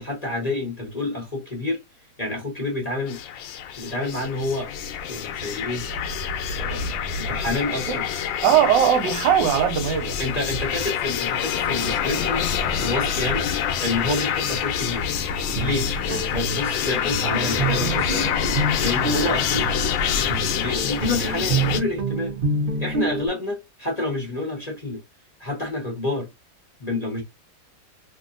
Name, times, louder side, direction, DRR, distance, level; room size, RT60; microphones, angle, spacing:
voice 1, 0.0-1.8 2.2-3.2 3.8-4.7 5.1-5.8 6.5-6.9 7.2-8.0 10.2-12.4 12.8-13.5 13.8-15.1 15.6-18.3 18.8-19.7 20.2-22.3 22.8-25.0 25.4-26.3 26.8-27.2, left 2 dB, 25° left, 1.1 m, -28 dB
sound 1, 3.1-21.8, left 7 dB, 90° left, 1.4 m, -26 dB
voice 2, 8.4-10.2, right 9 dB, 80° right, 1.4 m, -19 dB
Guitar, 15.3-23.3, right 4 dB, 50° right, 0.6 m, -28 dB
3.1 x 2.7 x 2.5 m
omnidirectional pair, 2.0 m